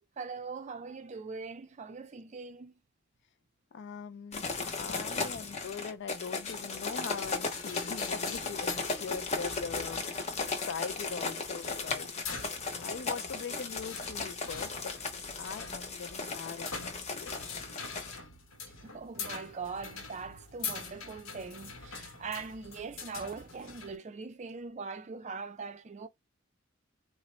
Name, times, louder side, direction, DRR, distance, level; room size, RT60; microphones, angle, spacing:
voice 1, 0.2-2.7 18.8-26.1, right 4 dB, 35° right, 0.4 m, -41 dB
voice 2, 3.7-10.0 10.4-12.4 12.7-15.0 15.4-17.4, left 6 dB, 60° left, 0.4 m, -41 dB
sound 1, 4.3-18.2, left 4 dB, 35° left, 0.7 m, -36 dB
sound 2, 6.5-24.0, left 5 dB, 85° left, 0.9 m, -45 dB
3.9 x 2.1 x 3.0 m
head